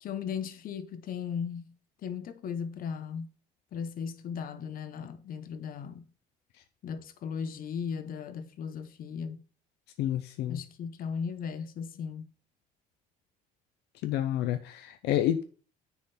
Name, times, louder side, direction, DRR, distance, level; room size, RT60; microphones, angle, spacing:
voice 1, 0.0-1.7 2.0-3.3 3.7-6.0 6.8-9.4 10.5-12.3, left 6 dB, 55° left, 0.9 m, -37 dB
voice 2, 10.0-10.6 14.0-15.4, left 12 dB, 80° left, 0.5 m, -29 dB
9.9 x 3.8 x 4.2 m
cardioid pair, 110°, 17 cm